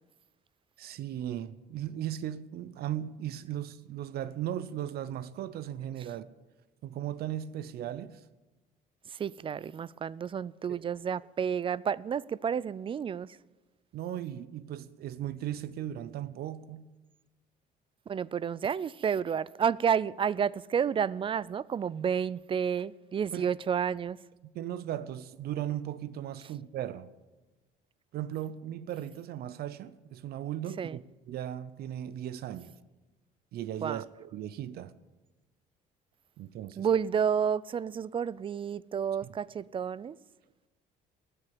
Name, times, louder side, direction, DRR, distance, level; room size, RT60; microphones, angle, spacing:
voice 1, 0.8-6.3 6.8-8.2 10.7-10.9 13.9-16.9 23.3-23.5 24.5-27.1 28.1-32.7 33.5-34.9 36.4-36.9 39.2-39.4, right 11 dB, 65° right, 0.7 m, -37 dB
voice 2, 9.2-13.3 18.1-24.2 30.8-31.0 33.8-34.0 36.8-40.2, right 7 dB, 30° right, 0.4 m, -30 dB
19.5 x 6.7 x 8.7 m
cardioid pair, 110°, 17 cm